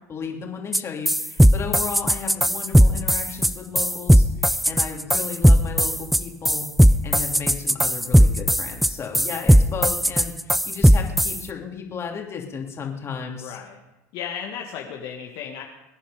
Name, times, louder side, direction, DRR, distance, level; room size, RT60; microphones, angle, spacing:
voice 1, 0.1-13.6, left 6 dB, 30° left, 1 dB, 3.1 m, -34 dB
sound 1, 0.7-0.8 1.1-11.4, equal, ahead, 0.6 m, -17 dB
voice 2, 13.4-13.8 14.1-15.6, left 8 dB, 55° left, 0 dB, 1.8 m, -34 dB
22.5 x 10.0 x 5.1 m, 0.96 s
hypercardioid pair, 80°, 8 cm